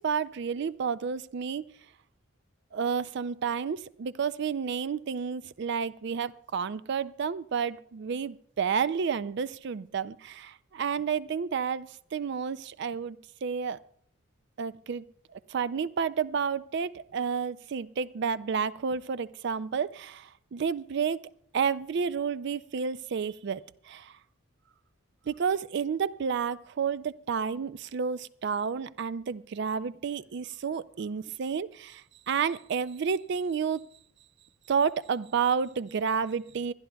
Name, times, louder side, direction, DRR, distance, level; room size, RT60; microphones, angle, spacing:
voice 1, 0.0-1.6 2.7-13.8 14.6-15.1 15.3-24.1 25.3-33.9 34.7-36.7, right 6 dB, 55° right, 17 dB, 0.4 m, -31 dB
25.5 x 11.5 x 2.3 m, 0.64 s
head